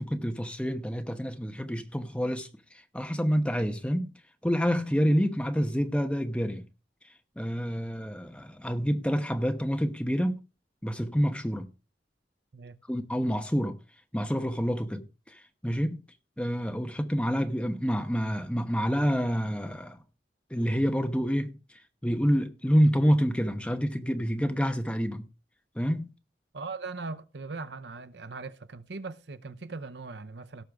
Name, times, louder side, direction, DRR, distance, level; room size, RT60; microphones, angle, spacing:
voice 1, 0.0-4.1 4.4-6.6 7.4-10.4 10.8-11.7 12.9-13.8 14.1-16.0 16.4-20.0 20.5-21.6 22.0-25.3 25.7-26.1, equal, 5° left, 1.0 m, -28 dB
voice 2, 26.5-30.6, right 3 dB, 75° right, 0.7 m, -39 dB
17.5 x 6.5 x 3.6 m
head